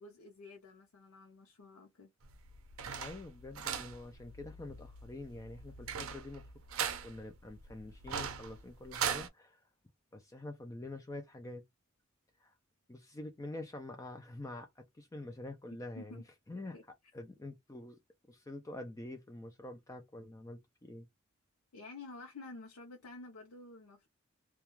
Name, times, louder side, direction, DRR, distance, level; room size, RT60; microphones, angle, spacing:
voice 1, 0.0-2.1 15.9-16.2 16.7-16.8 21.7-24.1, left 3 dB, 85° left, 0.6 m, -50 dB
sound 1, 2.2-9.3, right 7 dB, 70° right, 0.5 m, -40 dB
voice 2, 3.0-6.5 7.0-9.6 10.1-11.6 12.4-12.5 12.9-16.2 16.5-16.8 17.1-18.0 18.3-21.1, left 2 dB, 15° left, 0.3 m, -46 dB
2.3 x 2.2 x 2.9 m
head